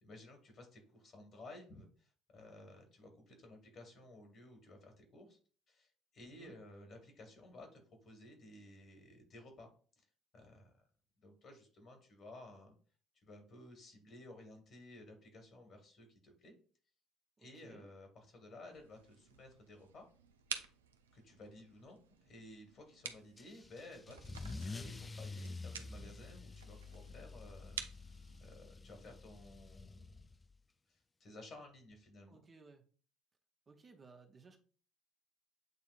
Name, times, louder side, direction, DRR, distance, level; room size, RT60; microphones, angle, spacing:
voice 1, 0.0-5.4 5.7-9.7 10.0-10.1 10.3-10.8 11.2-12.7 13.2-16.5 17.4-20.1 21.1-30.2 30.9-32.4, left 2 dB, 50° left, 4 dB, 1.6 m, -55 dB
voice 2, 17.4-17.9 32.3-32.9 33.7-34.6, right 4 dB, 35° right, 4 dB, 0.7 m, -59 dB
sound 1, 18.7-28.6, right 7 dB, 85° right, 0.4 m, -51 dB
Car / Engine starting / Accelerating revving vroom, 23.4-30.5, left 3 dB, 20° left, 0.3 m, -48 dB
7.9 x 2.6 x 2.5 m, 0.41 s
hypercardioid pair, 60°, 0 cm